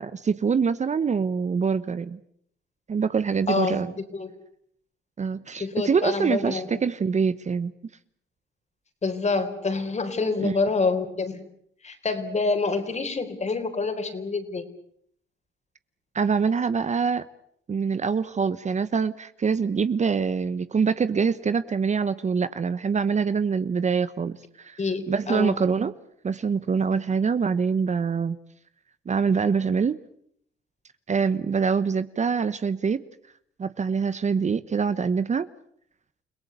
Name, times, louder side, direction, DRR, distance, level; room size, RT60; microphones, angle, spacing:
voice 1, 0.0-2.2 2.9-3.9 5.2-7.7 10.4-10.5 16.1-17.2 17.7-24.8 25.1-25.9 26.2-28.4 29.1-30.0 31.1-33.0 33.6-35.5, right 5 dB, 35° right, 14 dB, 1.0 m, -24 dB
voice 2, 3.5-4.3 5.5-6.7 9.0-11.4 11.8-14.6 24.8-25.6, left 3 dB, 35° left, 8 dB, 4.1 m, -27 dB
29.5 x 18.0 x 8.2 m, 0.68 s
cardioid pair, 90°, 20 cm